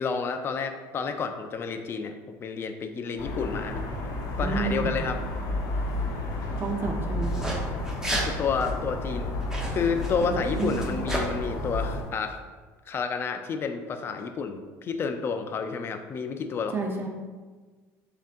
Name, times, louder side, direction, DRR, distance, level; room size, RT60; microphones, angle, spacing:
voice 1, 0.0-3.9 4.4-5.2 8.2-9.4 9.7-12.4 12.9-16.7, left 5 dB, 35° left, 7 dB, 0.4 m, -30 dB
sound 1, 3.2-12.0, left 1 dB, 65° left, 0.8 m, -31 dB
voice 2, 4.4-5.0 6.6-7.3 10.2-10.9 16.7-17.1, right 4 dB, 35° right, 1 dB, 0.6 m, -30 dB
sound 2, 7.2-7.6 7.8-8.3 8.6-8.7 9.4-11.2, right 1 dB, 10° right, 0.8 m, -32 dB
7.1 x 2.8 x 2.5 m, 1.4 s
cardioid pair, 115°, 7 cm